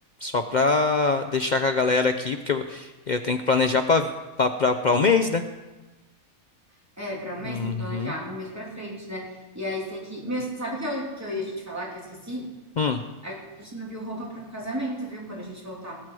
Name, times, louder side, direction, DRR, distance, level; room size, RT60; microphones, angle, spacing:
voice 1, 0.2-4.1 4.4-5.4 7.4-8.1 12.8-13.0, left 4 dB, 70° left, 7 dB, 0.4 m, -23 dB
voice 2, 7.0-12.5 13.2-15.9, equal, 10° right, -4 dB, 3.0 m, -33 dB
18.5 x 7.6 x 4.8 m, 1.2 s
omnidirectional pair, 1.5 m